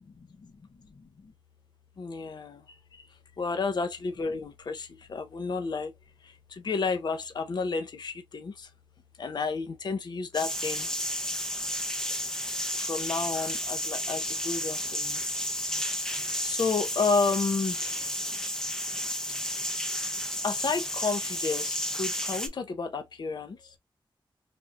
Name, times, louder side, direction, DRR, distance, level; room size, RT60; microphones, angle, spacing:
voice 1, 0.2-0.5 1.0-1.3 2.0-2.6 2.9-3.1 3.4-5.9 6.2-8.7 9.2-10.9 12.7-15.2 16.4-18.2 20.4-23.7, left 4 dB, 50° left, 0.5 m, -31 dB
sound 1, 10.3-22.5, equal, 5° left, 0.5 m, -32 dB
3.5 x 2.4 x 2.5 m
wide cardioid pair, 150°, 9 cm